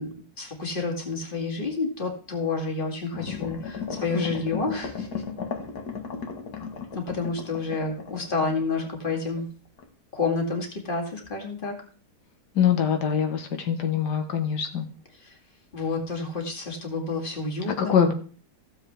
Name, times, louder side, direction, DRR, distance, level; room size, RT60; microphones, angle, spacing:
voice 1, 0.0-5.1 6.9-9.5 10.1-11.8 15.3-15.4 15.7-18.1, left 4 dB, 30° left, 1 dB, 2.3 m, -29 dB
sound 1, 3.1-9.4 9.8-9.9, left 6 dB, 70° left, 1.9 m, -36 dB
voice 2, 12.5-14.9 17.7-18.1, left 8 dB, 90° left, 6 dB, 1.7 m, -23 dB
16.0 x 7.4 x 3.4 m, 0.41 s
omnidirectional pair, 1.7 m